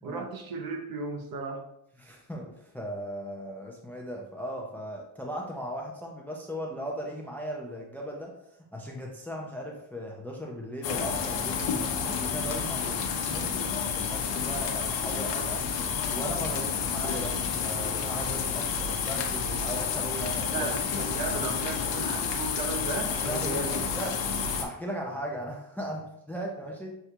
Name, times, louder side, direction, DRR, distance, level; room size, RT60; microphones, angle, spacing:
voice 1, 0.0-1.6 20.5-23.8, right 3 dB, 50° right, 3 dB, 0.9 m, -35 dB
voice 2, 2.0-8.3 8.7-11.6 12.1-15.8 16.1-20.7 23.2-24.2 24.6-26.9, equal, 5° left, 0 dB, 0.5 m, -37 dB
sound 1, 10.8-24.6, left 6 dB, 70° left, 0.8 m, -30 dB
6.5 x 2.3 x 2.9 m, 0.79 s
cardioid pair, 125°, 44 cm